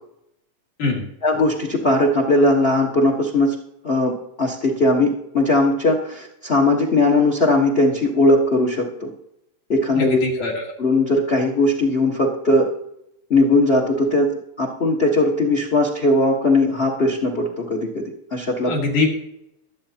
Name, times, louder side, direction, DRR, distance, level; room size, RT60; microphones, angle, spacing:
voice 1, 1.2-3.5 3.8-4.1 4.4-9.1 9.7-10.2 10.8-12.7 13.3-14.3 14.6-18.7, left 2 dB, 55° left, 0 dB, 0.6 m, -19 dB
voice 2, 10.0-10.7 18.6-19.1, left 3 dB, 90° left, -1 dB, 3.9 m, -22 dB
21.5 x 8.1 x 2.9 m, 0.79 s
omnidirectional pair, 3.5 m